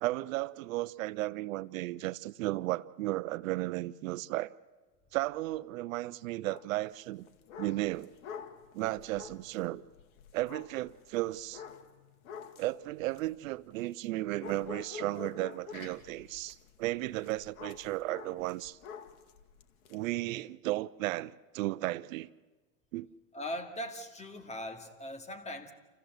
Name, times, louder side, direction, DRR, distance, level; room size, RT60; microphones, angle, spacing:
voice 1, 0.0-4.5 5.1-7.3 7.6-8.2 8.7-9.8 10.3-11.6 12.6-18.8 19.9-22.3 22.9-23.1, right 18 dB, 75° right, 0.7 m, -34 dB
sound 1, 6.4-6.7 7.1-14.1 14.4-20.0, left 7 dB, 80° left, 2.1 m, -48 dB
voice 2, 23.3-25.7, equal, 15° left, 2.2 m, -40 dB
28.5 x 15.0 x 7.9 m
hypercardioid pair, 110°, 41 cm